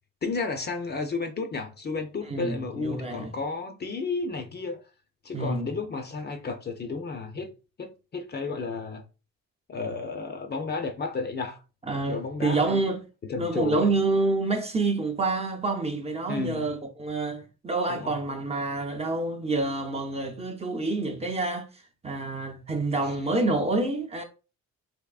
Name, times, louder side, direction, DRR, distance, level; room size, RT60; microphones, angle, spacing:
voice 1, 0.2-4.8 5.2-9.0 9.7-11.6 12.1-12.8 13.3-13.9 16.3-16.7 17.9-18.2 23.0-23.1, left 4 dB, 35° left, 0.6 m, -32 dB
voice 2, 2.3-3.3 5.3-5.7 11.9-13.0 13.4-21.7 22.0-24.2, right 3 dB, 20° right, 0.5 m, -27 dB
3.5 x 3.0 x 2.4 m
cardioid pair, 90°, 30 cm